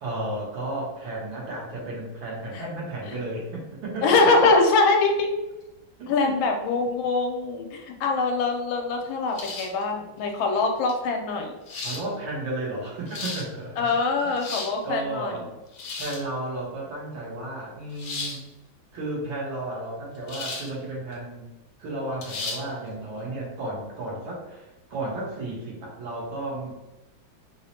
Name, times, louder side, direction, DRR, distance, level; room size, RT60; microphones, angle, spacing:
voice 1, 0.0-4.1 6.0-6.4 11.8-14.0 14.2-14.4 14.8-15.5 15.9-18.4 18.9-21.4 21.8-26.7, right 2 dB, 75° right, -4 dB, 1.9 m, -33 dB
voice 2, 4.0-5.3 6.1-11.5 13.8-15.3, left 3 dB, 80° left, 2 dB, 1.4 m, -23 dB
sound 1, 9.3-9.8 10.9-11.0 11.7-12.0 12.9-13.5 14.2-14.8 15.7-16.3 18.0-18.4 20.3-20.7 21.1-21.2 22.2-22.6, left 4 dB, 65° left, 1.0 m, -34 dB
4.5 x 2.1 x 2.8 m, 1.0 s
omnidirectional pair, 2.2 m